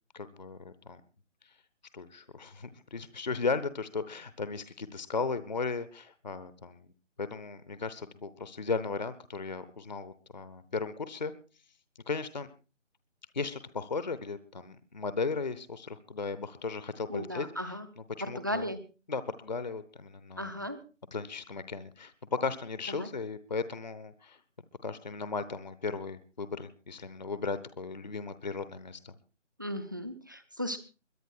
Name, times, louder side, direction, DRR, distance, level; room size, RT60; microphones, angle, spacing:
voice 1, 0.1-1.0 1.4-1.5 1.9-6.9 7.2-11.3 12.0-12.5 13.3-18.7 19.1-20.5 21.1-24.4 24.8-29.1, left 4 dB, 35° left, 13 dB, 0.8 m, -36 dB
voice 2, 17.1-17.9 18.2-18.8 20.4-20.8 22.9-23.1 29.6-30.8, equal, 15° right, 11 dB, 0.7 m, -36 dB
22.0 x 10.5 x 4.5 m, 0.34 s
figure-of-eight pair, 160°, 37 cm